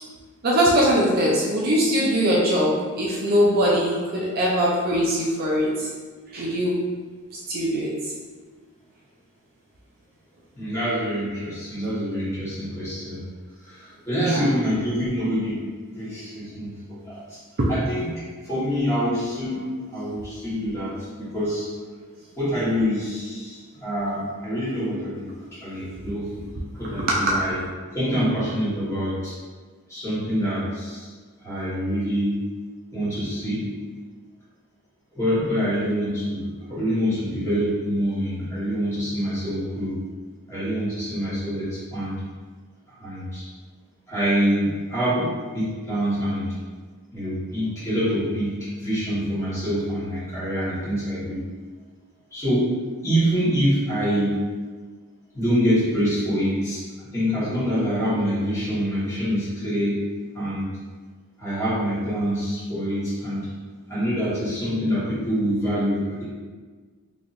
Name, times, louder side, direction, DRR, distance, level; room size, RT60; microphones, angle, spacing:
voice 1, 0.4-5.9 6.3-6.8 7.5-7.9 14.2-14.4 17.6-17.7 27.0-27.5, equal, 45° right, -4 dB, 0.5 m, -21 dB
voice 2, 10.5-13.2 13.6-15.6 15.9-17.4 17.7-18.1 18.4-19.6 19.9-21.7 22.4-25.3 25.6-26.3 26.7-27.6 27.9-29.3 29.9-31.1 31.4-32.4 32.9-33.7 35.1-40.0 40.5-42.2 43.0-43.4 44.1-46.4 47.1-48.5 48.8-51.4 52.3-52.7 53.0-54.4 55.3-56.8 57.1-60.0 60.3-60.7 61.4-63.5 63.9-66.2, equal, 15° left, -11 dB, 1.4 m, -25 dB
4.0 x 2.8 x 2.5 m, 1.5 s
head